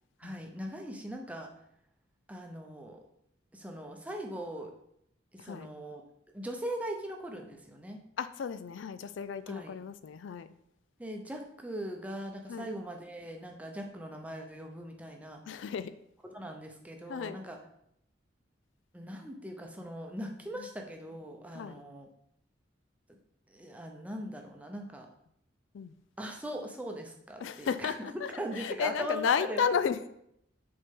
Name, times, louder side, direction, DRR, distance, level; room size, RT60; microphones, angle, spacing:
voice 1, 0.2-1.5 2.3-3.0 3.5-4.7 5.3-6.0 6.3-8.0 9.5-9.8 11.0-15.4 16.3-17.6 18.9-22.1 23.1-23.2 23.5-25.1 26.2-28.1 28.4-29.8, right 1 dB, 5° right, 2 dB, 0.7 m, -40 dB
voice 2, 8.2-10.5 12.5-12.7 15.5-15.9 17.1-17.4 21.5-21.8 25.7-25.9 27.4-30.1, left 7 dB, 75° left, 13 dB, 0.3 m, -33 dB
6.4 x 4.4 x 3.7 m, 0.75 s
head